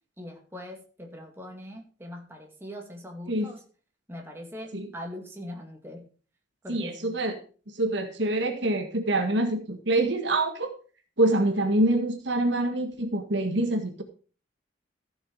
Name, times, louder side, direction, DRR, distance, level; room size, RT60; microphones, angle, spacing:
voice 1, 0.2-3.6 4.1-6.1 6.6-7.2, left 1 dB, 10° right, 0 dB, 2.2 m, -41 dB
voice 2, 6.7-7.4 7.7-10.7 11.2-14.0, right 1 dB, 65° right, 6 dB, 1.6 m, -25 dB
14.5 x 6.5 x 4.8 m, 0.38 s
head